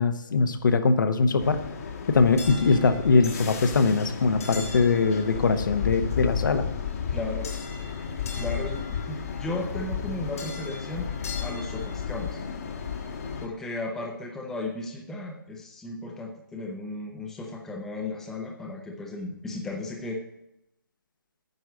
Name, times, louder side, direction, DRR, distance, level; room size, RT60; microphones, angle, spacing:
voice 1, 0.0-1.6 2.1-6.6, left 4 dB, 65° left, 8 dB, 1.0 m, -22 dB
sound 1, 1.4-13.5, left 6 dB, 45° left, 1.3 m, -33 dB
voice 2, 7.1-7.5 8.4-11.1 11.4-12.4 13.4-20.2, left 2 dB, 5° left, 0 dB, 0.7 m, -35 dB
9.5 x 5.3 x 6.2 m, 0.83 s
hypercardioid pair, 165°, 11 cm